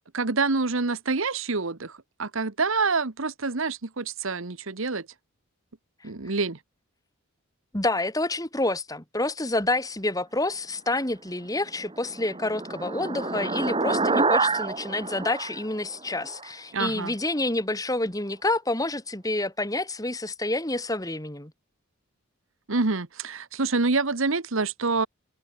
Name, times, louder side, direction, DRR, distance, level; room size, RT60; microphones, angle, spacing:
voice 1, 0.1-5.1 6.0-6.6 16.7-17.1 22.7-25.1, right 3 dB, 65° right, 1.2 m, -27 dB
voice 2, 7.7-21.5, left 2 dB, 15° left, 2.3 m, -28 dB
sound 1, 11.7-16.5, right 3 dB, 25° right, 1.6 m, -28 dB
head